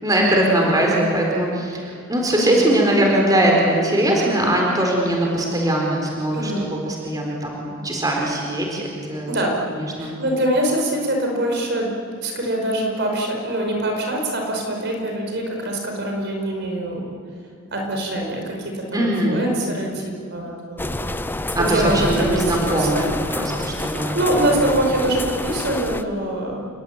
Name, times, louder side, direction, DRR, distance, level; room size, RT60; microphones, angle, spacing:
voice 1, 0.0-9.4 9.7-10.1 18.9-19.4 21.5-24.2, right 1 dB, 20° right, -1 dB, 4.2 m, -21 dB
voice 2, 6.3-6.7 9.3-9.6 10.0-11.9 12.2-17.1 17.7-21.0 21.6-23.1 23.6-23.7 24.1-26.6, right 1 dB, 55° right, 1 dB, 5.2 m, -24 dB
sound 1, 20.8-26.0, left 1 dB, 10° left, 0.7 m, -27 dB
28.5 x 21.0 x 8.8 m, 2.2 s
head